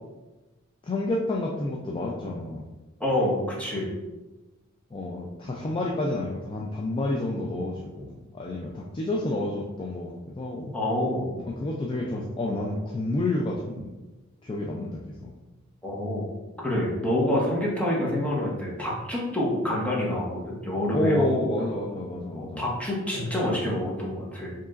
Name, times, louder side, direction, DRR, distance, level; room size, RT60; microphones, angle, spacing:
voice 1, 0.8-2.7 4.9-10.7 11.4-13.9 14.4-15.3 20.9-22.6, left 2 dB, 25° left, -2 dB, 0.3 m, -29 dB
voice 2, 3.0-3.9 10.7-11.3 15.8-16.3 16.6-21.5 22.3-24.5, left 1 dB, 5° left, -5 dB, 0.9 m, -27 dB
4.8 x 2.9 x 2.4 m, 1.1 s
head